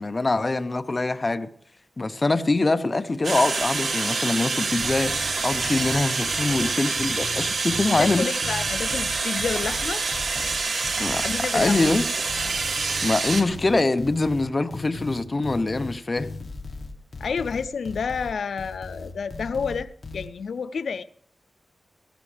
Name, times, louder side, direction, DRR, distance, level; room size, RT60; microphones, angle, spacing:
voice 1, 0.0-1.5 2.0-8.3 11.0-11.2 11.5-12.0 13.0-16.3, left 2 dB, 30° left, 0.7 m, -24 dB
sound 1, 3.2-13.4, right 4 dB, 75° right, 2.1 m, -27 dB
sound 2, 4.8-20.3, left 3 dB, 55° left, 1.4 m, -38 dB
voice 2, 7.9-10.0 11.2-11.8 17.2-19.9 20.1-21.0, left 5 dB, 85° left, 0.4 m, -29 dB
15.0 x 15.0 x 3.4 m
wide cardioid pair, 105°, 0 cm